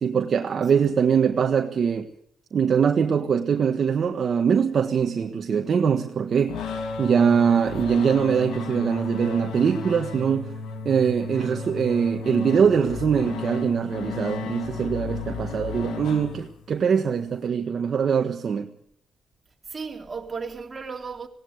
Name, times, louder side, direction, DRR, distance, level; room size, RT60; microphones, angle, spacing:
voice 1, 0.0-2.1 2.5-6.6 7.0-10.6 10.8-18.7, right 7 dB, 50° right, 1.5 m, -22 dB
sound 1, 6.5-16.7, left 5 dB, 80° left, 2.3 m, -34 dB
voice 2, 19.7-21.3, right 5 dB, 30° right, 3.4 m, -35 dB
19.0 x 18.0 x 8.2 m
cardioid pair, 105°, 0 cm